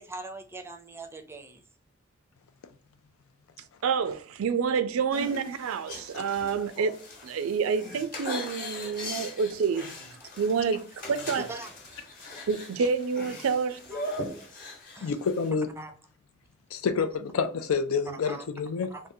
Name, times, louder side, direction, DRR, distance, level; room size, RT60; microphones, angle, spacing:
voice 1, 0.0-1.6 11.5-11.7 13.9-14.0 15.0-15.1 15.8-15.9 18.3-18.4 18.9-19.0, right 2 dB, 10° right, 0.4 m, -41 dB
voice 2, 3.8-9.9 10.4-11.5 12.5-13.8, right 5 dB, 75° right, 0.4 m, -28 dB
sound 1, 5.1-15.5, left 1 dB, 45° left, 1.0 m, -40 dB
voice 3, 15.0-15.7 16.7-18.9, left 5 dB, 85° left, 0.4 m, -28 dB
3.5 x 2.2 x 2.6 m
head